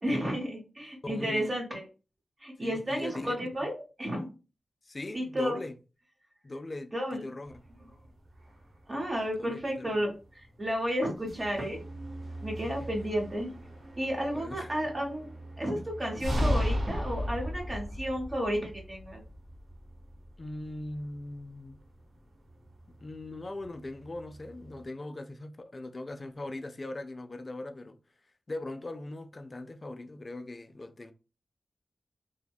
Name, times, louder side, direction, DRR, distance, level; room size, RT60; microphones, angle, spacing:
voice 1, 0.0-1.9 2.4-4.3 5.1-5.6 6.9-7.2 8.9-11.8 12.4-13.5 14.0-15.3 15.6-19.2, equal, 35° right, 0.9 m, -32 dB
voice 2, 1.0-1.5 2.6-3.4 4.9-5.8 6.4-7.5 9.4-10.0 12.6-12.9 14.3-14.7 20.4-21.8 22.9-28.0 28.5-31.1, left 2 dB, 45° left, 0.3 m, -40 dB
sound 1, 7.4-24.9, equal, 85° right, 1.0 m, -38 dB
2.6 x 2.0 x 2.3 m
cardioid pair, 50°, 0 cm